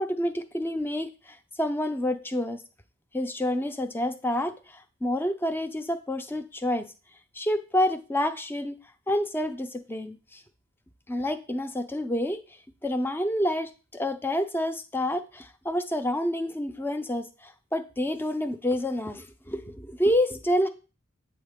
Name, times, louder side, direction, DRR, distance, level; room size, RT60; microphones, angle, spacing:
voice 1, 0.0-2.6 3.1-6.9 7.3-8.8 9.1-10.4 11.1-12.4 12.8-20.7, left 1 dB, 10° left, 9 dB, 0.4 m, -28 dB
8.2 x 4.0 x 3.6 m, 0.33 s
head